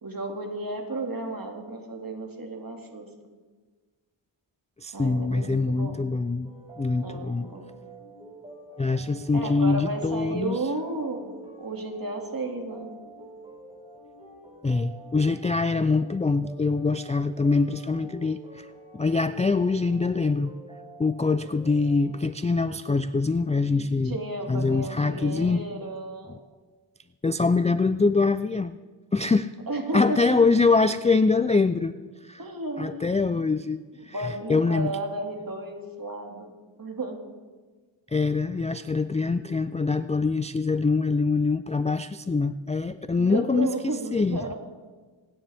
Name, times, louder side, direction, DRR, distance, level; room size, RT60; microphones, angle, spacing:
voice 1, 0.0-3.4 4.9-6.1 7.0-7.8 9.3-11.3 11.6-12.9 24.0-26.4 29.7-30.2 32.4-33.1 34.1-37.3 43.2-44.6, right 2 dB, 45° right, 2 dB, 2.5 m, -33 dB
voice 2, 4.8-6.5 6.8-7.5 8.8-10.6 14.6-18.7 18.9-20.5 21.0-24.2 24.5-25.6 26.3-26.4 27.2-28.8 29.1-29.5 29.9-32.0 32.2-32.4 32.8-34.9 38.1-43.7 44.1-44.4, left 4 dB, 15° left, 12 dB, 0.3 m, -24 dB
sound 1, 6.4-22.2, right 2 dB, 10° right, 5.0 m, -47 dB
26.5 x 10.0 x 3.5 m, 1.4 s
wide cardioid pair, 75°, 50 cm